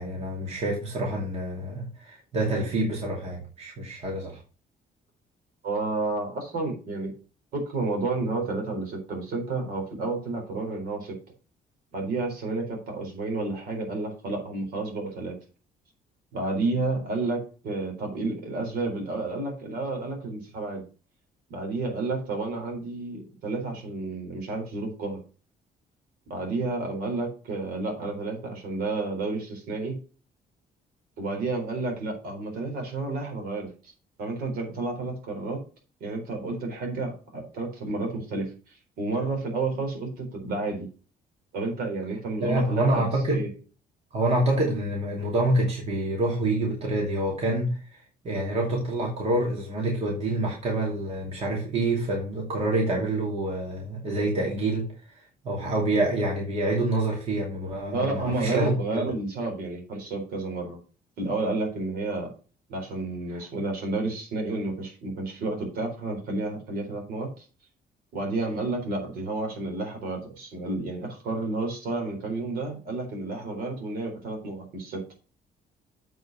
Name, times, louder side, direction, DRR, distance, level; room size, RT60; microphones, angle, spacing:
voice 1, 0.0-4.4 42.4-43.4 44.1-54.8 55.4-58.7, right 1 dB, 40° right, -1 dB, 2.6 m, -27 dB
voice 2, 5.6-7.1 7.5-11.2 11.9-15.4 16.3-20.8 21.5-25.2 26.3-30.0 31.2-33.9 34.2-35.6 36.0-40.9 41.5-43.5 57.9-60.8 61.2-62.3 62.7-67.5 68.1-75.0, right 3 dB, 70° right, 2 dB, 4.0 m, -31 dB
7.8 x 5.4 x 5.4 m, 0.35 s
cardioid pair, 170°, 16 cm